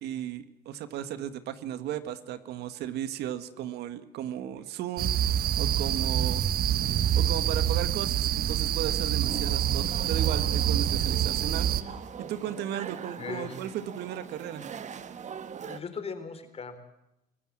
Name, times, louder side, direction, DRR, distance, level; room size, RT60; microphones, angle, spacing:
voice 1, 0.0-5.1 5.6-6.5 7.1-11.8 12.3-14.7, right 10 dB, 80° right, 11 dB, 1.8 m, -35 dB
sound 1, 5.0-11.8, right 10 dB, 60° right, 1.2 m, -26 dB
sound 2, 9.2-15.8, right 7 dB, 45° right, 1.6 m, -41 dB
voice 2, 13.2-13.6 15.7-16.8, left 5 dB, 35° left, 9 dB, 3.9 m, -38 dB
26.0 x 17.0 x 7.6 m, 0.86 s
cardioid pair, 110°, 17 cm